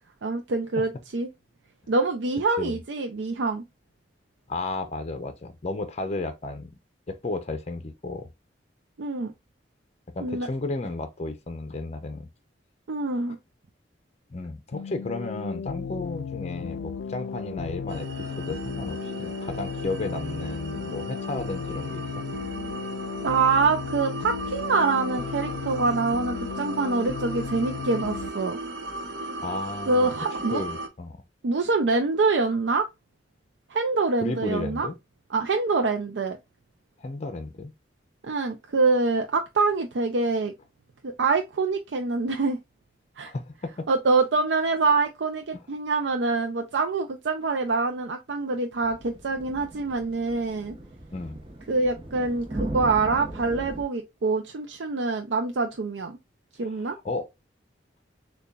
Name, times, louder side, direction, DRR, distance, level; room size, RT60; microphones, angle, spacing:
voice 1, 0.2-1.3 1.9-3.6 9.0-9.3 10.2-10.5 12.9-13.4 23.2-28.6 29.9-30.6 31.4-32.9 33.7-34.9 35.3-36.4 38.2-40.5 41.0-42.6 43.2-43.3 43.9-50.8 51.7-56.2 56.6-57.0, right 3 dB, 80° right, 0.5 m, -25 dB
voice 2, 4.5-6.7 7.1-8.3 10.1-12.3 14.3-22.2 29.4-30.1 30.5-31.2 34.2-35.0 37.0-37.7 43.2-43.9 45.5-45.6 51.1-51.4 57.0-57.3, left 2 dB, 40° left, 0.6 m, -33 dB
sound 1, 14.7-28.3, left 6 dB, 90° left, 0.3 m, -35 dB
sound 2, 17.9-30.9, right 2 dB, 65° right, 0.9 m, -37 dB
sound 3, 48.8-53.8, right 1 dB, 30° right, 1.0 m, -37 dB
6.7 x 2.3 x 2.3 m
head